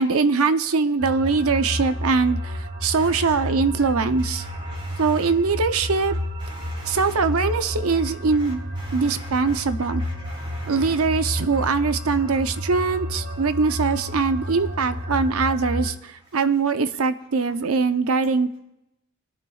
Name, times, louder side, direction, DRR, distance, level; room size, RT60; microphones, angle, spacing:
voice 1, 0.0-4.5 5.0-6.2 6.8-8.6 8.9-10.0 10.7-18.5, right 4 dB, 75° right, 10 dB, 0.7 m, -22 dB
sound 1, 1.0-15.9, equal, 50° right, 1.4 m, -31 dB
voice 2, 4.4-5.1 6.4-7.0 8.9-9.0 10.3-10.8, equal, 25° right, -3 dB, 4.9 m, -42 dB
23.5 x 10.0 x 2.4 m, 0.87 s
head